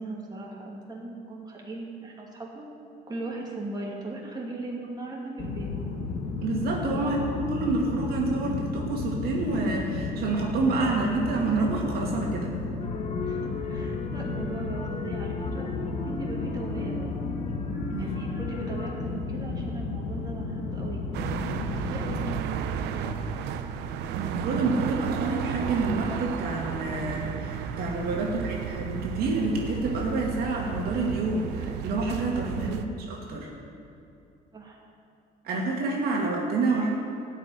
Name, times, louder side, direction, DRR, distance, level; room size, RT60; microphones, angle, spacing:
voice 1, 0.0-2.7 3.1-5.7 6.9-7.1 12.5-12.8 13.3-17.2 18.0-21.0 21.7-23.1 28.3-28.6 32.5-32.8 34.5-34.8, right 2 dB, 25° right, -3 dB, 2.4 m, -38 dB
sound 1, 5.4-22.4, left 4 dB, 65° left, 1.4 m, -33 dB
voice 2, 6.4-12.5 17.9-18.2 24.1-33.5 35.4-37.0, right 3 dB, 65° right, -1 dB, 2.2 m, -28 dB
sound 2, 12.8-19.0, left 4 dB, 40° left, 1.3 m, -37 dB
sound 3, 21.1-32.9, right 7 dB, 85° right, 0.7 m, -33 dB
13.0 x 5.8 x 9.5 m, 2.7 s
cardioid pair, 110°, 17 cm